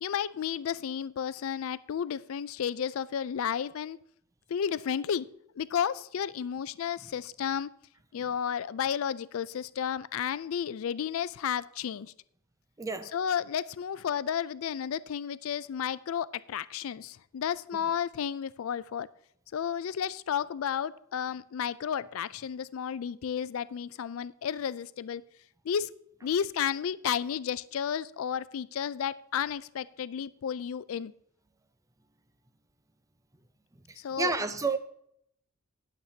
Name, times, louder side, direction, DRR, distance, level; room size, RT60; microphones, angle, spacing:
voice 1, 0.0-4.0 4.5-5.3 5.6-7.7 8.1-12.1 13.1-19.1 19.5-25.2 25.6-25.9 26.2-31.1 34.0-34.3, left 8 dB, 70° left, 0.4 m, -32 dB
voice 2, 12.8-13.1 34.2-34.8, right 4 dB, 15° right, 0.6 m, -29 dB
18.0 x 7.2 x 2.8 m
head